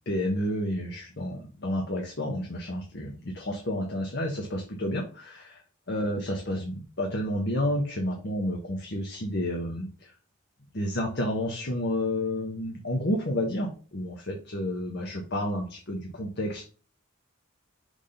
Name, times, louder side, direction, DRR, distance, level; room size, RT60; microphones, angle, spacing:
voice 1, 0.1-5.6 5.9-10.1 10.7-16.6, left 1 dB, 55° left, 1 dB, 1.3 m, -30 dB
6.5 x 3.7 x 5.1 m, 0.38 s
head